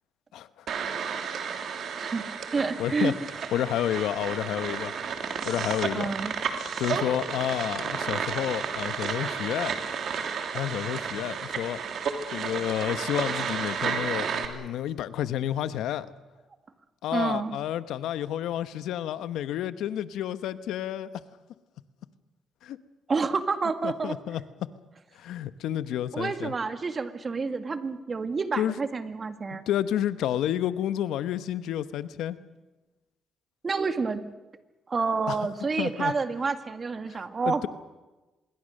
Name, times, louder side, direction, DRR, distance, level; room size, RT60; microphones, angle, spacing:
voice 1, 0.3-0.7 2.8-3.1 3.5-4.9 5.4-6.1 6.8-9.7 10.5-11.8 12.3-16.1 17.0-21.1 22.6-22.8 23.8-24.4 25.1-26.5 28.6-28.7 29.7-32.4 35.3-35.4 35.8-36.1 37.1-37.7, left 11 dB, 85° left, 13 dB, 1.0 m, -30 dB
sound 1, 0.7-14.5, right 6 dB, 65° right, 3.0 m, -32 dB
voice 2, 2.5-3.1 5.9-6.3 17.1-17.6 23.1-24.2 26.1-29.6 33.6-34.2 34.9-37.7, right 4 dB, 35° right, 9 dB, 2.0 m, -29 dB
26.5 x 22.0 x 6.6 m, 1.1 s
cardioid pair, 90°, 0 cm